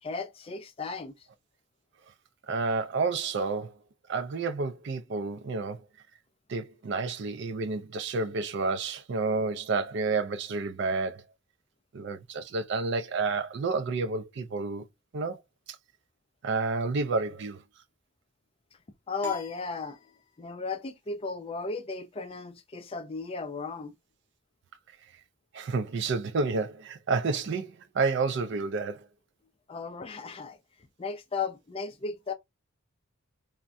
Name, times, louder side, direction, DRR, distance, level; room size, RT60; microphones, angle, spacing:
voice 1, 0.0-1.3 19.1-20.0 20.4-23.9 29.7-32.3, left 4 dB, 25° left, 0.4 m, -35 dB
voice 2, 2.5-3.7 4.1-5.8 6.5-11.2 11.9-14.9 15.1-15.4 16.4-17.6 25.5-29.1, right 4 dB, 55° right, 0.4 m, -30 dB
sound 1, 19.2-20.7, left 5 dB, 10° left, 0.7 m, -42 dB
3.4 x 2.1 x 2.5 m
head